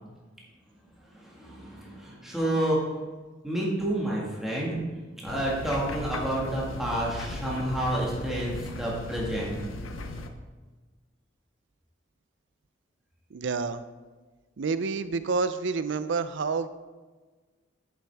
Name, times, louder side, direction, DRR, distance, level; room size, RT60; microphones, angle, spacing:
voice 1, 1.0-3.0 3.4-9.6, right 1 dB, ahead, -5 dB, 1.7 m, -30 dB
sound 1, 5.3-10.3, left 2 dB, 85° left, 0.7 m, -37 dB
voice 2, 13.3-13.8 14.6-16.7, right 4 dB, 65° right, 12 dB, 0.5 m, -28 dB
8.4 x 7.4 x 3.5 m, 1.3 s
head